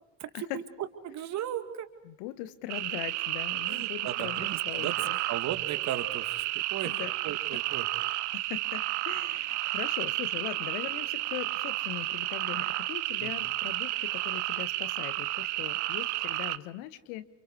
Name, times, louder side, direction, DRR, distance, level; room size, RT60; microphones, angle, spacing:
voice 1, 0.2-0.6 1.0-1.9 3.7-5.0 5.3-6.9 7.2-7.9 13.2-13.3 13.6-13.7, right 10 dB, 50° right, 9 dB, 2.3 m, -36 dB
voice 2, 2.0-5.2 6.8-7.1 8.3-17.3, left 14 dB, 60° left, 13 dB, 1.4 m, -40 dB
sound 1, 2.7-16.6, right 18 dB, 70° right, 0.9 m, -32 dB
29.0 x 29.0 x 4.8 m, 0.88 s
figure-of-eight pair, 55°, 36 cm